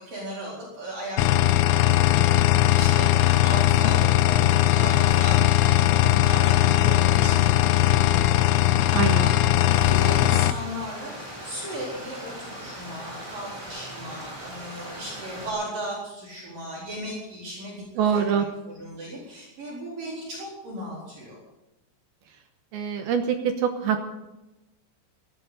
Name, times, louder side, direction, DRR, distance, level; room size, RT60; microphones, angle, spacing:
voice 1, 0.0-21.4, equal, 45° right, -4 dB, 5.5 m, -36 dB
sound 1, 1.2-10.5, left 15 dB, 85° left, 2.2 m, -19 dB
voice 2, 8.9-9.3 18.0-18.4 22.7-24.1, right 7 dB, 70° right, 5 dB, 2.5 m, -24 dB
Stream, 9.7-15.5, right 1 dB, 5° right, 3.5 m, -39 dB
19.0 x 14.5 x 4.1 m, 1.0 s
omnidirectional pair, 5.4 m